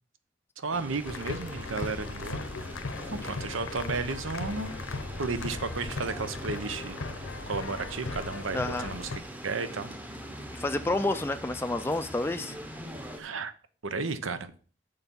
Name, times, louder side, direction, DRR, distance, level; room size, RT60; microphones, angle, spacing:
voice 1, 0.6-2.5 3.1-4.7 5.2-7.0 7.5-9.1 9.4-9.9 13.2-13.5 13.8-14.5, right 4 dB, 80° right, 12 dB, 0.9 m, -33 dB
sound 1, 0.7-13.2, equal, 10° right, 0.8 m, -42 dB
sound 2, 1.0-9.2, left 3 dB, 80° left, 0.8 m, -38 dB
voice 2, 8.5-8.9 10.5-12.6, left 2 dB, 10° left, 8 dB, 0.4 m, -29 dB
7.0 x 6.9 x 5.4 m, 0.40 s
head